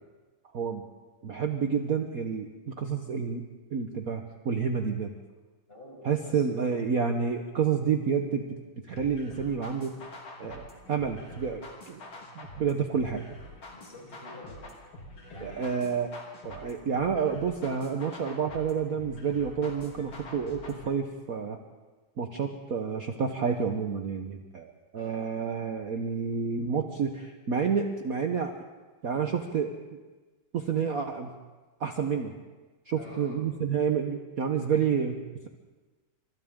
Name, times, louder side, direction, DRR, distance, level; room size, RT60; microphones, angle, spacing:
voice 1, 0.5-0.9 1.2-3.5 3.7-5.1 6.0-10.0 10.4-12.0 12.3-13.3 15.4-16.1 16.4-21.6 22.2-28.5 29.0-29.7 30.5-31.3 31.8-32.3 32.9-35.5, right 6 dB, 50° right, 4 dB, 1.4 m, -29 dB
voice 2, 5.7-6.6 13.0-13.1 13.7-14.6 15.3-15.8 24.9-25.3 32.9-33.4, left 1 dB, 25° left, -2 dB, 6.0 m, -48 dB
sound 1, 8.9-20.9, left 1 dB, 85° left, 4.0 m, -46 dB
28.5 x 25.5 x 3.8 m, 1.3 s
omnidirectional pair, 2.3 m